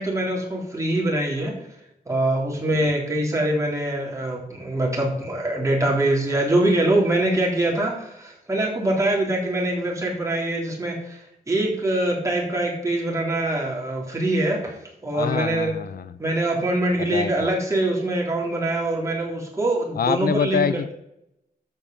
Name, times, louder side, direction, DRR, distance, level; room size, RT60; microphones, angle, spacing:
voice 1, 0.0-1.5 2.1-11.2 11.5-14.7 15.0-15.8 16.2-20.7, right 1 dB, 20° right, -2 dB, 3.6 m, -23 dB
voice 2, 15.1-16.2 17.0-17.5 20.0-20.9, left 7 dB, 70° left, 15 dB, 0.5 m, -26 dB
13.0 x 5.4 x 7.2 m, 0.81 s
wide cardioid pair, 155°, 16 cm